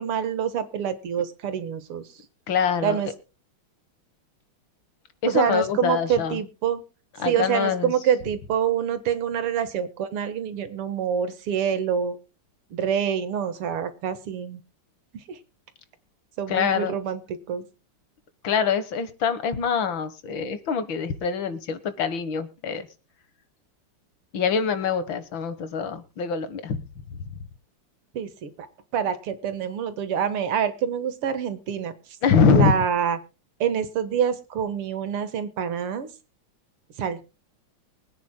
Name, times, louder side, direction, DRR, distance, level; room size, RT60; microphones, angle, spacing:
voice 1, 0.0-2.1 2.8-3.1 5.3-6.8 7.2-12.2 12.7-14.6 15.3-15.4 16.4-17.7 28.1-28.7 28.9-31.9 32.5-33.2 33.6-36.1 37.0-37.3, right 8 dB, 90° right, 11 dB, 2.3 m, -26 dB
voice 2, 2.5-3.0 5.2-6.4 7.2-7.9 16.5-16.9 18.4-22.9 24.3-26.8 27.1-27.3 32.2-32.8, left 6 dB, 65° left, 12 dB, 2.1 m, -24 dB
24.0 x 9.4 x 2.2 m, 0.29 s
omnidirectional pair, 2.4 m